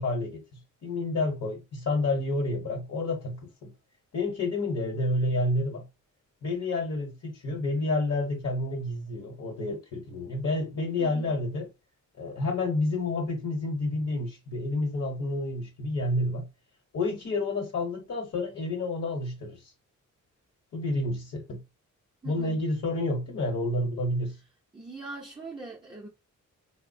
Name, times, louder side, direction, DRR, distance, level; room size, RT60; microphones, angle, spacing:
voice 1, 0.0-3.7 4.1-5.8 6.4-11.7 12.2-16.5 16.9-19.6 20.7-21.6 22.2-24.4, left 2 dB, 55° left, 1.0 m, -29 dB
voice 2, 11.0-11.3 22.2-22.6 24.7-26.1, right 3 dB, 15° right, 0.5 m, -42 dB
3.4 x 2.0 x 2.6 m
cardioid pair, 85°, 31 cm